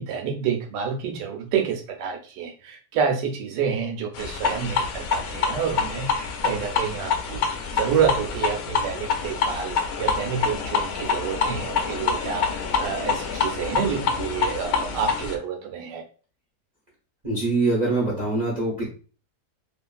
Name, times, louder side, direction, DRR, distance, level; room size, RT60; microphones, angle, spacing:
voice 1, 0.0-7.4 7.7-16.0, right 7 dB, 80° right, 4 dB, 1.3 m, -28 dB
sound 1, 4.1-15.4, left 5 dB, 70° left, 1.0 m, -26 dB
voice 2, 17.2-18.9, right 2 dB, 40° right, -4 dB, 0.7 m, -23 dB
3.1 x 2.5 x 2.3 m, 0.38 s
omnidirectional pair, 1.8 m